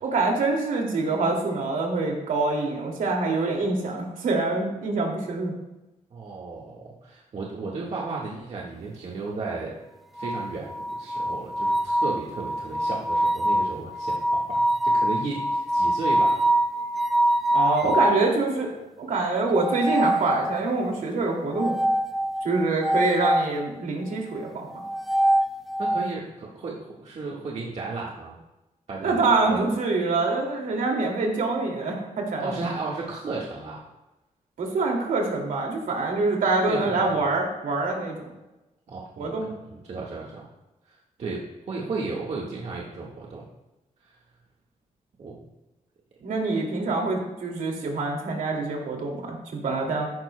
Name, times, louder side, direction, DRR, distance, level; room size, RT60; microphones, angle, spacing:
voice 1, 0.0-5.5 17.5-21.7 22.4-24.7 29.0-32.6 34.6-38.3 39.2-39.5 46.2-50.1, right 3 dB, 75° right, 0 dB, 2.5 m, -25 dB
voice 2, 6.1-9.7 10.1-16.4 17.8-18.0 25.8-28.4 28.9-29.6 32.4-33.8 36.7-37.1 38.9-39.3 39.7-40.4 40.9-41.4 41.7-43.5 45.2-45.4, right 3 dB, 50° right, -4 dB, 1.7 m, -34 dB
sound 1, 10.2-18.3 19.5-20.8 21.6-23.5 24.7-26.1, right 1 dB, ahead, 0.5 m, -24 dB
15.0 x 11.5 x 2.3 m, 0.99 s
wide cardioid pair, 155°, 14 cm